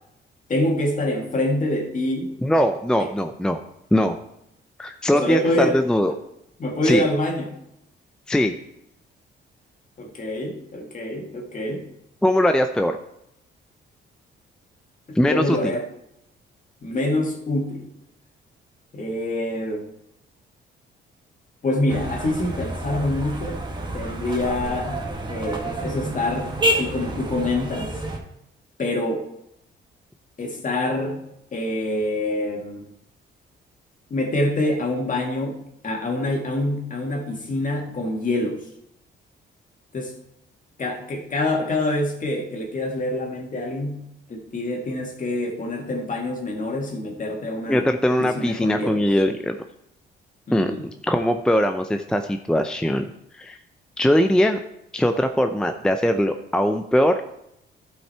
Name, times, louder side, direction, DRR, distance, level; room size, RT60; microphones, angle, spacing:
voice 1, 0.5-2.3 3.0-3.1 5.1-5.8 6.6-7.6 10.0-11.9 15.1-15.9 16.8-17.9 18.9-19.9 21.6-23.6 23.9-28.0 28.8-29.3 30.4-31.2 31.5-32.9 34.1-38.7 39.9-40.1 40.8-47.9 48.2-49.0 50.5-50.9, left 1 dB, 40° left, 2 dB, 2.2 m, -26 dB
voice 2, 2.4-3.6 3.9-4.2 4.8-6.1 6.8-7.1 8.3-8.5 12.2-13.0 15.1-15.6 47.7-49.6 50.5-53.0 53.3-53.6 54.0-54.6 54.9-57.2, equal, 5° left, 6 dB, 0.5 m, -21 dB
sound 1, 21.9-28.2, right 1 dB, 25° right, 1.9 m, -29 dB
12.0 x 5.7 x 4.4 m, 0.80 s
cardioid pair, 90°, 20 cm